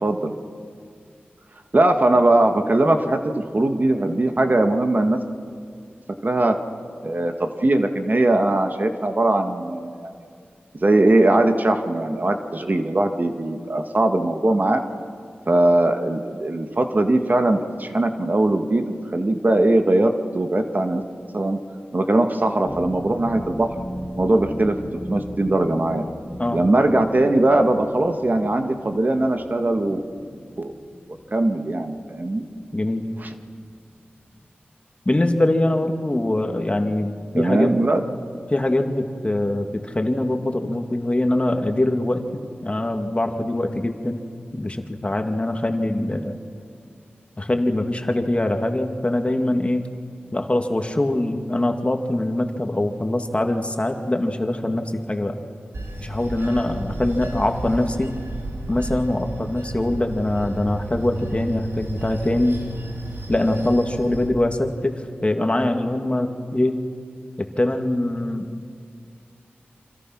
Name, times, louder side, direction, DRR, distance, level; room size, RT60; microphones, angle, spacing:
voice 1, 0.0-0.4 1.7-5.2 6.2-6.6 7.0-10.1 10.8-14.8 15.5-21.0 21.3-21.6 21.9-23.7 24.2-24.8 25.1-26.0 26.5-30.0 30.6-30.7 31.3-32.4 33.2-33.3 37.4-38.0, right 2 dB, 50° right, 6 dB, 1.8 m, -20 dB
sound 1, 22.6-33.3 33.6-34.0 34.4-34.5, left 1 dB, 10° left, 1.9 m, -38 dB
voice 2, 32.7-33.1 35.1-37.8 38.5-44.2 44.5-46.4 47.4-49.9 50.3-55.4 56.0-58.2 58.7-62.6 63.3-66.8 67.4-68.5, left 1 dB, 30° left, 5 dB, 2.3 m, -23 dB
Bell / Train, 55.7-64.3, right 2 dB, 80° right, 3.6 m, -33 dB
27.5 x 26.0 x 6.2 m, 2.3 s
cardioid pair, 45°, 4 cm